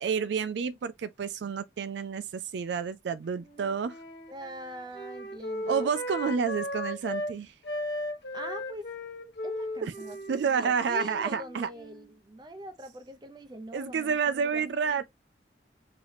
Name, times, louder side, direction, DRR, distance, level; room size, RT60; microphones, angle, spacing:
voice 1, 0.0-4.0 5.7-7.5 9.8-9.9 10.3-11.7 13.7-15.0, right 6 dB, 75° right, 0.4 m, -29 dB
Wind instrument woodwind instrument, 3.3-7.3 7.6-12.1, left 1 dB, 65° left, 1.3 m, -36 dB
voice 2, 4.3-5.9 8.3-8.9 9.4-15.0, right 1 dB, 25° right, 0.6 m, -43 dB
3.1 x 2.8 x 3.9 m
head